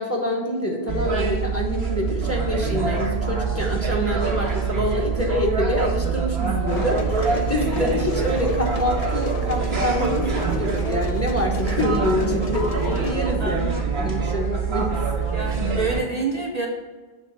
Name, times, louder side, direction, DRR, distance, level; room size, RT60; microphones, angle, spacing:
voice 1, 0.0-13.7 14.0-14.9, left 1 dB, 15° left, -1 dB, 1.1 m, -26 dB
sound 1, 0.9-16.0, right 5 dB, 80° right, 1.4 m, -25 dB
sound 2, 6.7-13.1, left 2 dB, 40° left, 0.7 m, -34 dB
voice 2, 13.4-13.9 15.3-16.7, right 3 dB, 45° right, 0 dB, 0.8 m, -27 dB
6.6 x 4.0 x 6.4 m, 1.4 s
omnidirectional pair, 1.0 m